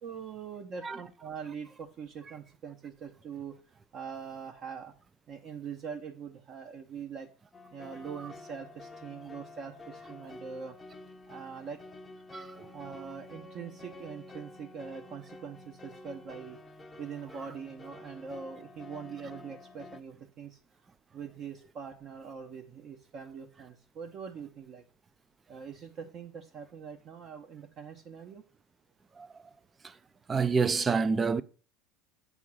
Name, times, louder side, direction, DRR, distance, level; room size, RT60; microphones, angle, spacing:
voice 1, 0.0-3.6 3.9-4.9 5.3-7.3 7.7-10.8 11.3-11.8 12.7-16.6 17.0-20.6 21.1-24.8 25.5-28.4, right 6 dB, 45° right, 0.8 m, -43 dB
sound 1, 7.5-20.0, left 2 dB, 15° left, 0.7 m, -49 dB
voice 2, 12.3-12.7 29.2-29.3 30.3-31.4, right 5 dB, 20° right, 0.4 m, -27 dB
8.4 x 3.6 x 6.1 m
supercardioid pair, 120°, 0 cm